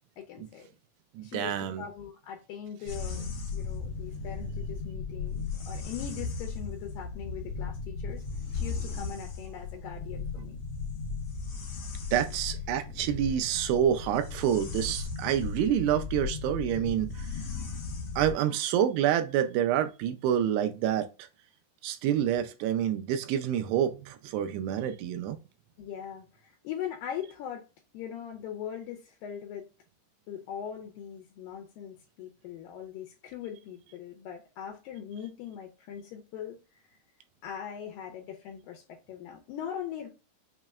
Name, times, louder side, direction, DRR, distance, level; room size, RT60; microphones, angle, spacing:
voice 1, 0.2-0.7 1.2-8.2 8.5-10.6 25.8-27.7 27.9-29.7 30.3-36.8 37.4-40.1, left 9 dB, 80° left, 2.0 m, -41 dB
voice 2, 1.1-1.8 12.1-17.4 18.2-21.3 21.8-25.4, right 10 dB, 85° right, 2.7 m, -28 dB
sound 1, 2.9-18.3, left 4 dB, 65° left, 1.6 m, -36 dB
6.5 x 3.0 x 2.3 m
omnidirectional pair, 4.7 m